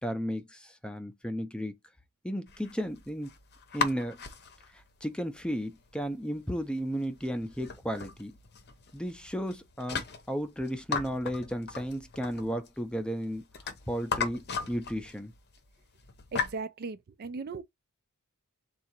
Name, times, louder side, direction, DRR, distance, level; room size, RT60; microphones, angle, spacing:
voice 1, 0.0-1.7 2.2-3.3 3.7-4.2 4.7-8.4 8.9-13.5 13.9-15.3, equal, 5° left, 0.5 m, -34 dB
sound 1, 2.5-16.6, left 5 dB, 50° left, 0.7 m, -38 dB
voice 2, 16.3-17.6, right 4 dB, 45° right, 0.4 m, -37 dB
3.7 x 2.5 x 4.4 m
head